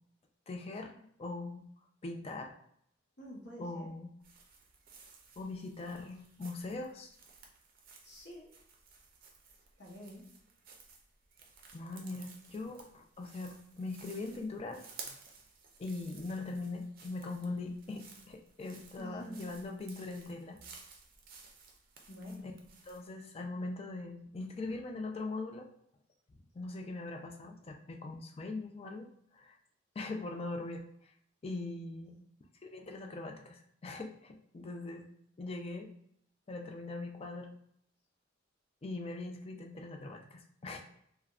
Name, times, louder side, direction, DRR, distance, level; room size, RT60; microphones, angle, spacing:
voice 1, 0.5-1.6 2.0-2.5 3.6-4.1 5.4-7.2 11.7-15.2 15.8-20.6 22.9-25.7 26.5-29.6 30.0-30.8 31.4-32.2 32.6-35.0 35.4-35.9 36.5-37.5 38.8-40.9, left 2 dB, 30° left, 3 dB, 0.3 m, -41 dB
voice 2, 3.2-3.9 8.0-8.5 9.8-10.3 19.0-19.5 22.1-22.5 32.0-32.2, equal, 55° left, -4 dB, 0.9 m, -47 dB
sound 1, 4.2-23.1, right 5 dB, 45° right, 0.5 m, -56 dB
3.3 x 2.1 x 2.4 m, 0.70 s
head